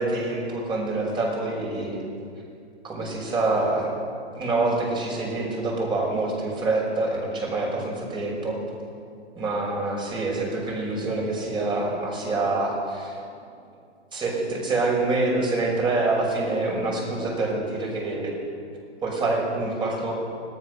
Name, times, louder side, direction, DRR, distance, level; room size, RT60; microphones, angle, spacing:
voice 1, 0.0-2.0 2.8-3.9 4.3-8.6 9.4-13.1 14.1-18.3 19.0-20.1, right 2 dB, 15° right, -1 dB, 6.0 m, -26 dB
25.5 x 18.5 x 6.8 m, 2.3 s
hypercardioid pair, 145°, 34 cm